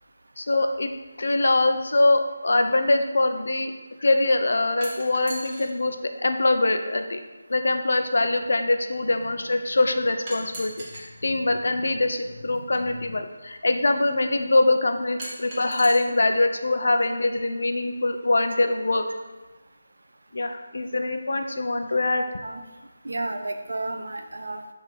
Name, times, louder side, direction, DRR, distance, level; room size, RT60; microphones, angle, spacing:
voice 1, 0.4-0.9 1.2-3.7 4.0-6.0 6.2-7.2 7.5-19.1 20.3-22.4, left 2 dB, 65° left, 6 dB, 0.7 m, -23 dB
sound 1, 4.8-5.7 6.9-7.0 10.3-11.1 12.5-12.6 15.2-16.0, right 1 dB, 25° right, 1.7 m, -37 dB
voice 2, 23.0-24.7, right 2 dB, 70° right, 6 dB, 0.8 m, -32 dB
6.5 x 3.7 x 6.1 m, 1.2 s
figure-of-eight pair, 160°, 0 cm